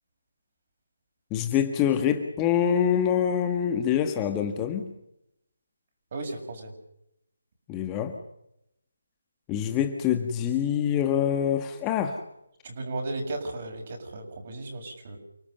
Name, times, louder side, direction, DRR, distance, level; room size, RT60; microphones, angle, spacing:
voice 1, 1.3-4.9 7.7-8.2 9.5-12.2, left 9 dB, 15° left, 6 dB, 1.7 m, -25 dB
voice 2, 6.1-6.7 12.6-15.2, right 2 dB, 40° right, 4 dB, 7.3 m, -35 dB
29.5 x 18.5 x 6.7 m, 0.80 s
figure-of-eight pair, 155°, 0 cm